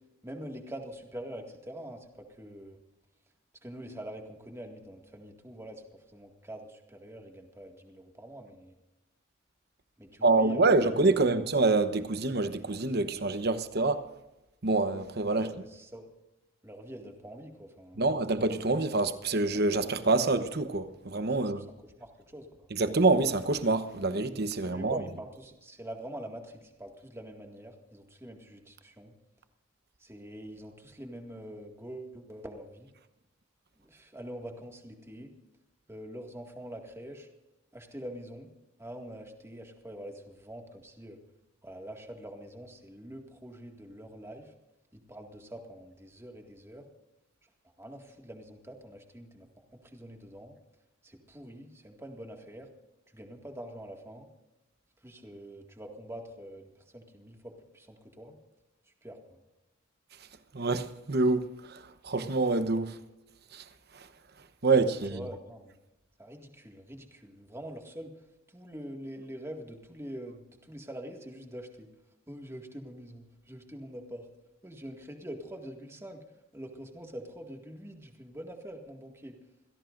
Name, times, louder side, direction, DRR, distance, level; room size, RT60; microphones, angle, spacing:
voice 1, 0.2-2.8 3.6-5.8 6.1-8.7 10.0-11.4 15.3-16.1 16.6-18.1 21.6-22.7 24.7-29.1 30.0-32.9 33.8-35.3 35.9-37.3 37.7-38.5 38.8-41.2 41.6-44.5 44.9-46.8 47.8-50.5 51.0-52.7 53.1-54.3 55.0-58.4 59.0-59.4 65.1-65.7 66.2-68.1 68.5-71.9 72.3-74.3 74.6-76.2 76.5-79.4, right 1 dB, 15° right, 2.0 m, -45 dB
voice 2, 10.2-14.0 14.6-15.5 18.0-21.6 22.7-25.0 60.5-61.4 61.7-61.8 62.0-63.0 63.5-63.6 64.6-65.2, right 3 dB, 50° right, 1.0 m, -26 dB
27.0 x 17.0 x 2.6 m
head